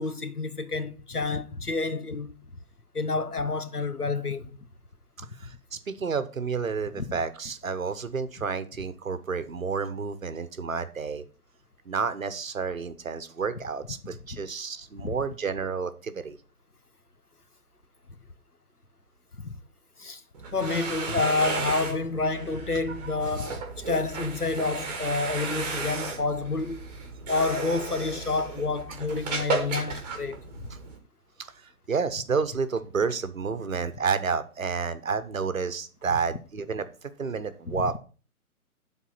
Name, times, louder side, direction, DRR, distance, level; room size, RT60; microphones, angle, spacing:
voice 1, 0.0-2.3 2.9-4.6 7.0-7.1 14.3-14.4 15.0-15.1 19.4-19.6 20.0-20.2 20.5-23.6 23.9-26.8 27.3-30.4 37.7-37.9, left 3 dB, 90° left, 1.2 m, -29 dB
voice 2, 5.4-11.2 11.9-16.4 23.0-23.1 29.7-29.8 31.4-31.5 31.9-36.8 37.2-38.0, right 5 dB, 65° right, 1.2 m, -30 dB
sound 1, 20.3-31.0, right 4 dB, 30° right, 2.3 m, -34 dB
11.5 x 4.2 x 5.7 m
figure-of-eight pair, 140°, 44 cm